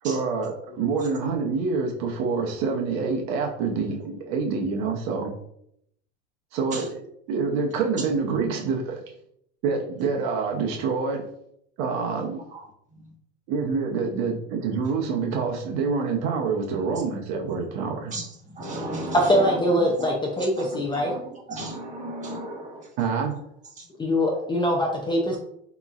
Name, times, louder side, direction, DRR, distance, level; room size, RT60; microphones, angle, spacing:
voice 1, 0.0-5.3 6.5-7.0 7.3-9.0 9.6-11.3 11.8-12.4 13.5-18.1 23.0-23.3, right 5 dB, 55° right, 2 dB, 0.8 m, -26 dB
voice 2, 18.6-19.6 20.0-20.1 20.4-21.2 21.5-22.9 23.8-23.9, right 1 dB, 20° right, -2 dB, 1.4 m, -34 dB
voice 3, 19.1-21.1 24.0-25.4, equal, 15° left, -1 dB, 0.6 m, -23 dB
5.0 x 3.0 x 2.4 m, 0.72 s
supercardioid pair, 120°, 34 cm